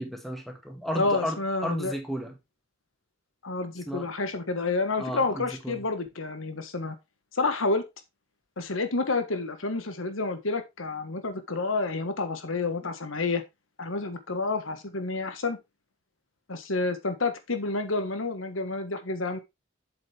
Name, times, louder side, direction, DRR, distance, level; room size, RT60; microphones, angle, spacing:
voice 1, 0.0-2.4 3.9-4.1 5.0-5.8, equal, ahead, 1.9 m, -34 dB
voice 2, 0.9-2.0 3.4-6.9 7.3-7.8 8.6-13.4 13.8-15.6 16.5-19.4, left 3 dB, 85° left, 1.4 m, -29 dB
7.8 x 7.6 x 3.3 m
head